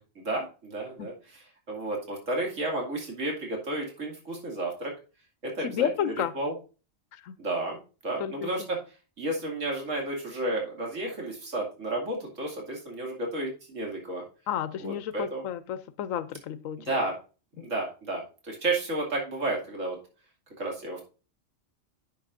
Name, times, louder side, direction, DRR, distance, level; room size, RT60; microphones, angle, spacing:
voice 1, 0.2-4.9 5.4-6.5 7.4-8.8 9.2-14.2 14.8-15.4 16.8-17.2 17.6-20.0 20.6-21.1, right 2 dB, 75° right, 0 dB, 2.9 m, -32 dB
voice 2, 5.6-6.3 7.1-7.3 8.2-8.5 14.5-17.0 17.6-17.7, left 9 dB, 85° left, 14 dB, 1.0 m, -32 dB
10.5 x 7.1 x 2.6 m, 0.33 s
omnidirectional pair, 1.3 m